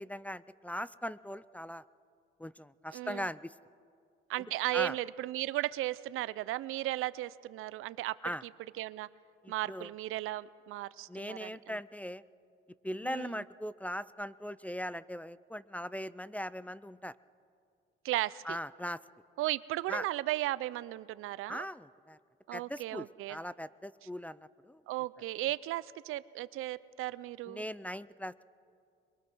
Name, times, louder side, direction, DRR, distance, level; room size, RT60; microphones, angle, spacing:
voice 1, 0.0-1.8 2.4-3.5 4.7-5.0 8.2-8.4 9.4-9.9 11.1-12.2 12.8-17.1 18.4-19.0 19.9-20.1 21.5-22.2 22.5-24.8 27.5-28.3, equal, 5° left, 18 dB, 0.4 m, -40 dB
voice 2, 2.9-3.3 4.3-8.1 8.8-9.1 9.5-11.8 13.0-13.4 18.0-18.6 19.4-21.7 22.5-23.4 24.9-27.6, right 16 dB, 85° right, 18 dB, 0.5 m, -35 dB
23.0 x 22.5 x 6.2 m, 2.4 s
cardioid pair, 85°, 21 cm